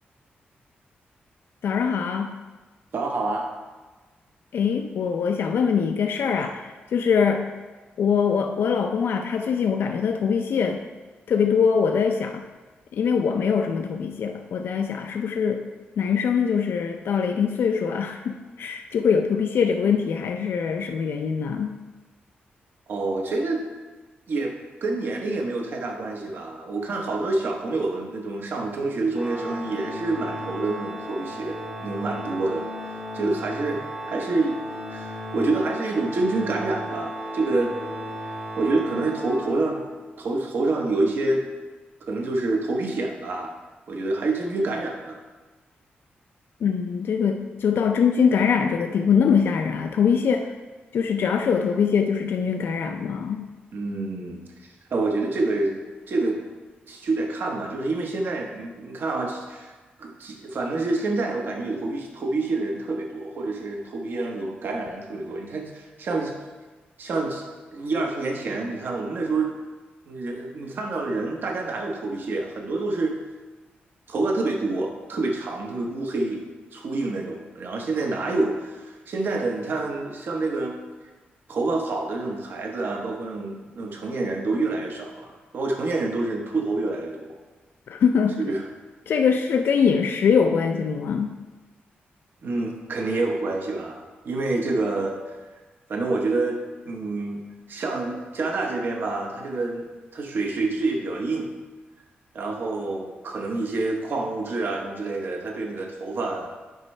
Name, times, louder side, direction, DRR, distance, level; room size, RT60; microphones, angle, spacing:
voice 1, 1.6-2.3 4.5-7.5 8.0-10.8 11.3-12.4 12.9-15.6 16.0-21.8 46.6-50.5 50.9-53.4 87.9-88.4 89.1-91.3, left 6 dB, 70° left, 4 dB, 0.4 m, -23 dB
voice 2, 2.9-3.5 22.9-23.6 24.3-33.8 34.1-34.5 34.9-37.8 38.2-41.5 42.1-43.5 43.9-45.2 53.7-54.4 54.9-55.8 56.1-56.4 56.9-59.7 60.0-66.3 67.0-67.4 67.7-69.6 70.1-73.2 74.1-76.4 76.7-80.8 81.5-87.4 88.4-88.6 92.4-95.4 95.9-97.4 97.7-99.9 100.1-101.5 102.3-106.5, right 2 dB, 60° right, 2 dB, 1.0 m, -27 dB
Organ, 29.1-40.0, equal, 15° right, 0.7 m, -35 dB
9.2 x 5.3 x 3.2 m, 1.3 s
cardioid pair, 100°, 4 cm